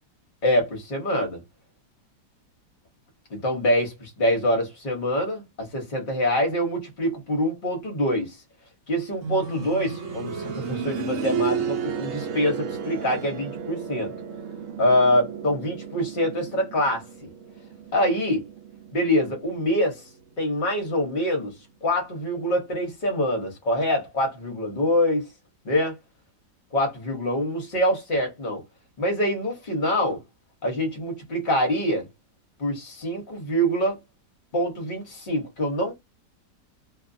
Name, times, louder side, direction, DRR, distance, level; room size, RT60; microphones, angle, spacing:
voice 1, 0.4-1.4 3.3-8.4 8.9-14.1 14.8-17.0 17.9-18.5 18.9-20.0 20.4-21.5 21.8-25.3 25.6-26.0 26.7-28.6 29.0-30.2 30.6-32.1 32.6-34.0 34.5-35.9, equal, 40° left, 0.8 m, -25 dB
sound 1, 9.2-20.0 20.3-20.4 21.3-21.4, right 6 dB, 65° right, 0.9 m, -33 dB
2.6 x 2.4 x 2.5 m
omnidirectional pair, 1.9 m